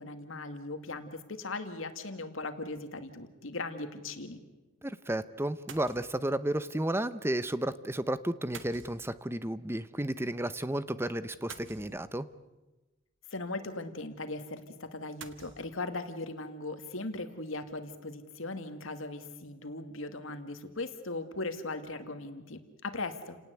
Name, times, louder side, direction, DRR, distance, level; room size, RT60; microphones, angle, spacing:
voice 1, 0.0-4.4 13.3-23.4, left 2 dB, 85° left, 8 dB, 2.3 m, -39 dB
sound 1, 2.7-3.0 5.7-6.3 8.5-9.5 11.5-12.4 15.2-15.6, right 6 dB, 65° right, 1.6 m, -49 dB
voice 2, 4.8-12.3, right 1 dB, 10° right, 14 dB, 0.8 m, -32 dB
29.5 x 18.5 x 8.3 m, 1.1 s
head